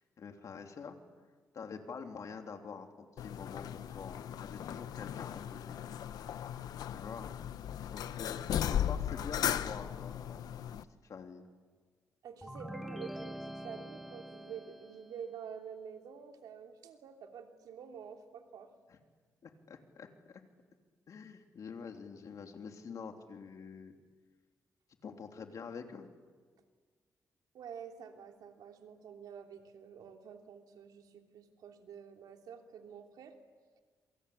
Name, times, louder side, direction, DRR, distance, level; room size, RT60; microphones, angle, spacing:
voice 1, 0.2-1.0 1.5-5.8 6.9-7.3 7.9-10.5 11.0-11.4 18.9-19.0 19.4-20.4 21.1-23.9 25.0-26.1, left 5 dB, 60° left, 4 dB, 3.2 m, -46 dB
sound 1, 3.2-10.8, left 10 dB, 85° left, 0.9 m, -37 dB
voice 2, 12.2-18.7 27.5-33.3, right 7 dB, 85° right, 4 dB, 3.1 m, -48 dB
sound 2, 12.4-15.2, equal, ahead, 1.6 m, -45 dB
27.0 x 24.5 x 8.6 m, 1.5 s
cardioid pair, 100°, 6 cm